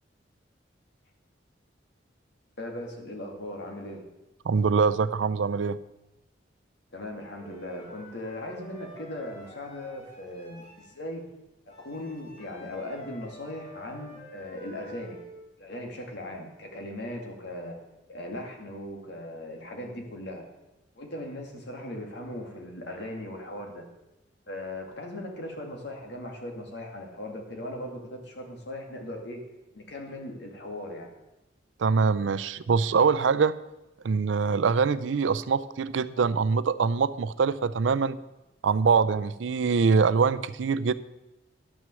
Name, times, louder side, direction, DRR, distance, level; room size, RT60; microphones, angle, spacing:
voice 1, 2.6-4.0 6.9-11.3 11.7-15.2 15.6-17.8 18.1-20.5 21.0-23.8 24.5-29.4 29.7-31.1, left 1 dB, 65° left, 2 dB, 2.2 m, -38 dB
voice 2, 4.4-5.8 31.8-33.6 34.0-38.2 38.6-40.9, right 5 dB, 85° right, 15 dB, 0.4 m, -24 dB
Wind instrument woodwind instrument, 7.4-10.9 11.7-15.4, equal, 40° left, 4.0 m, -48 dB
11.0 x 6.1 x 7.7 m, 0.98 s
head